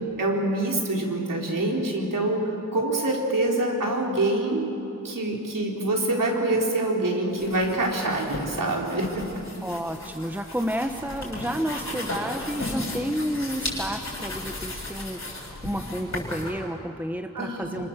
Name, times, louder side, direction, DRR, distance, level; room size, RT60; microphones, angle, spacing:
voice 1, 0.0-4.7 5.0-9.2 17.3-17.9, right 2 dB, 75° right, -1 dB, 4.3 m, -26 dB
sound 1, 7.3-16.5, left 2 dB, 55° left, 7.4 m, -35 dB
voice 2, 9.6-17.9, equal, 5° right, 5 dB, 1.1 m, -31 dB
26.0 x 25.5 x 7.5 m, 3.0 s
wide cardioid pair, 75°, 32 cm